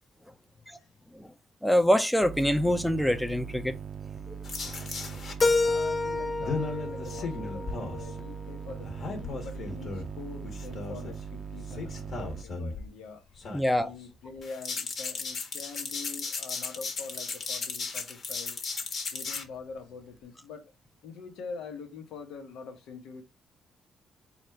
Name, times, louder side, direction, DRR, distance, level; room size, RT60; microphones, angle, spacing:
voice 1, 1.6-3.8 4.3-4.4 13.5-13.9, equal, 5° left, 0.5 m, -25 dB
sound 1, 2.2-12.4, right 6 dB, 45° right, 0.6 m, -40 dB
sound 2, 4.4-5.3 6.4-8.1 8.8-10.1 10.4-11.1 11.7-12.9 13.3-14.0 14.4-19.4, left 4 dB, 55° left, 1.4 m, -36 dB
voice 2, 5.3-13.3 13.8-18.6 18.8-20.7 21.0-23.2, left 5 dB, 90° left, 1.2 m, -44 dB
Keyboard (musical), 5.4-8.3, left 3 dB, 40° left, 0.7 m, -29 dB
4.2 x 2.5 x 4.4 m
cardioid pair, 90°, 0 cm